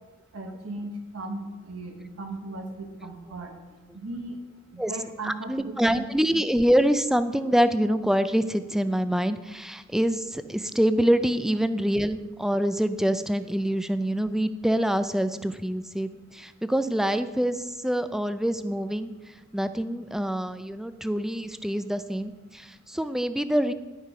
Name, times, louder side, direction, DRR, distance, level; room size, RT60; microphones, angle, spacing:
voice 1, 0.3-3.5 3.9-4.4 4.7-6.0, right 2 dB, 65° right, 2 dB, 1.0 m, -37 dB
voice 2, 5.2-19.1 19.5-23.7, equal, ahead, 11 dB, 0.3 m, -25 dB
11.0 x 6.5 x 4.9 m, 1.2 s
head